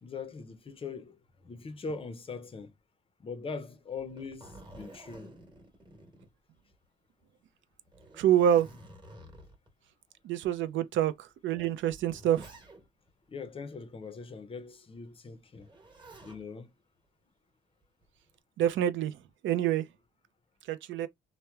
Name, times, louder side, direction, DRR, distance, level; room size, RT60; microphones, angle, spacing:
voice 1, 0.0-2.7 3.2-5.3 13.3-15.7 16.2-16.7, left 4 dB, 30° left, 0.5 m, -41 dB
Zipper (clothing), 3.9-6.8 7.2-7.3 7.8-9.7 10.5-10.6 11.5-13.1 15.5-16.4 17.8-18.3, right 1 dB, 20° right, 1.1 m, -51 dB
voice 2, 8.2-8.7 10.2-12.5 18.6-19.2 19.4-19.9 20.7-21.1, right 10 dB, 70° right, 0.5 m, -27 dB
2.9 x 2.0 x 2.3 m
cardioid pair, 90°, 20 cm